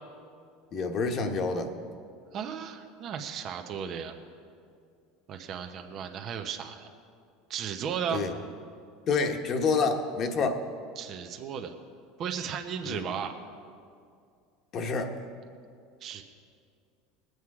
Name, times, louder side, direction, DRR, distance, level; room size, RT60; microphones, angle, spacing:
voice 1, 0.7-1.7 8.1-8.4 9.1-10.6 12.8-13.0 14.7-15.2, left 4 dB, 45° left, 5 dB, 1.2 m, -28 dB
voice 2, 2.3-4.1 5.3-6.9 7.5-8.2 11.0-11.8 12.2-13.3 16.0-16.2, right 8 dB, 45° right, 5 dB, 1.0 m, -35 dB
20.5 x 8.0 x 4.9 m, 2.3 s
supercardioid pair, 110°, 0 cm